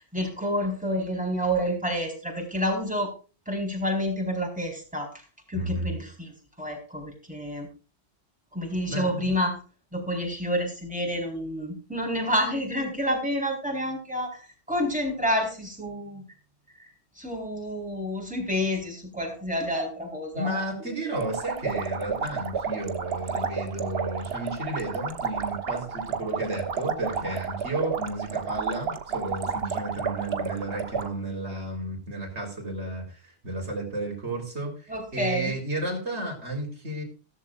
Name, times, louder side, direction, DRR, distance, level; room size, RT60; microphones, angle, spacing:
voice 1, 0.0-3.1 3.5-5.1 5.5-6.3 6.6-7.7 8.5-9.6 9.9-14.4 14.7-16.2 17.2-20.6 21.0-21.1 34.9-35.6, equal, 5° right, 0 dB, 4.4 m, -29 dB
voice 2, 5.5-6.0 8.9-9.3 20.3-37.0, right 2 dB, 80° right, 1 dB, 4.0 m, -32 dB
sound 1, 21.1-31.1, right 5 dB, 65° right, 1.4 m, -31 dB
15.0 x 14.0 x 2.5 m, 0.34 s
omnidirectional pair, 1.1 m